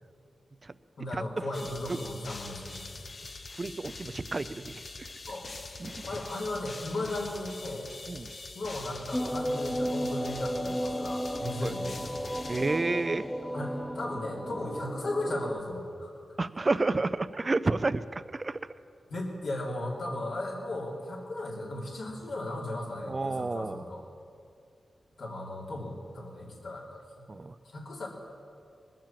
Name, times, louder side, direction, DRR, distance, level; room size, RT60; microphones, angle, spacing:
voice 1, 1.0-3.0 5.3-5.5 6.1-7.9 8.5-12.3 13.5-16.1 19.1-24.1 25.2-27.3 27.6-28.1, left 1 dB, 85° left, -4 dB, 3.1 m, -36 dB
sound 1, 1.5-13.4, left 3 dB, 50° left, 0.9 m, -44 dB
voice 2, 3.6-4.8 5.8-6.1 8.1-8.3 11.6-11.7 12.5-13.3 16.4-18.6 23.1-23.8 27.3-27.5, right 3 dB, 40° right, 14 dB, 0.5 m, -30 dB
sound 2, 9.1-15.6, equal, 5° left, 0.6 m, -34 dB
20.5 x 7.5 x 7.5 m, 2.5 s
cardioid pair, 75°, 0 cm